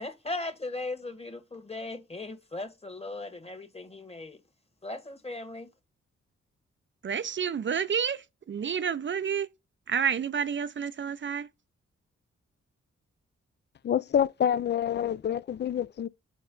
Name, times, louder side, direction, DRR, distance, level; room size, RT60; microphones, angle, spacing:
voice 1, 0.0-4.4 4.8-5.7, left 2 dB, 20° left, 1.4 m, -38 dB
voice 2, 7.0-8.2 8.5-9.5 9.9-11.5, right 7 dB, 40° right, 0.5 m, -29 dB
voice 3, 13.8-16.1, left 9 dB, 40° left, 0.4 m, -27 dB
4.3 x 4.1 x 5.3 m
supercardioid pair, 40°, 29 cm